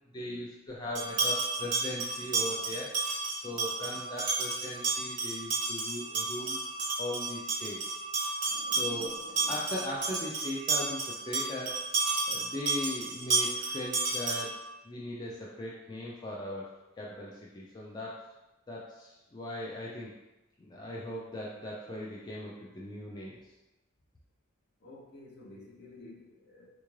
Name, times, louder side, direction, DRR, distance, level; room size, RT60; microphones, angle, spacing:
voice 1, 0.1-3.2 3.4-6.6 7.0-7.8 8.5-11.7 12.3-14.5 14.8-16.7 17.0-18.2 18.7-20.1 20.6-23.4, left 1 dB, 20° left, -5 dB, 0.3 m, -39 dB
sound 1, 0.9-14.6, right 3 dB, 40° right, 1.0 m, -32 dB
voice 2, 24.8-26.7, left 2 dB, 55° left, -2 dB, 0.7 m, -51 dB
3.5 x 2.4 x 3.1 m, 1.0 s
head